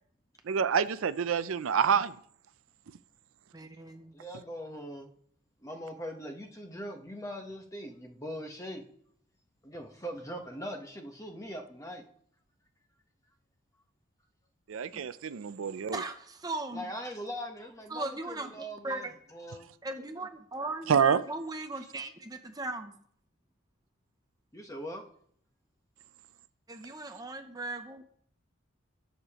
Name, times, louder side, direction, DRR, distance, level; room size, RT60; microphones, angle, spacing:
voice 1, 0.5-2.1 14.7-16.0 20.9-21.2, right 7 dB, 70° right, 0.4 m, -27 dB
voice 2, 3.5-4.2 14.9-15.0 15.9-16.8 17.9-19.1 19.8-23.0 26.7-28.0, right 2 dB, 20° right, 0.6 m, -38 dB
voice 3, 4.1-5.1 5.6-8.8 9.6-12.1 16.7-19.7 21.7-21.9 24.5-25.0, equal, 15° left, 1.0 m, -41 dB
19.0 x 6.6 x 3.0 m
head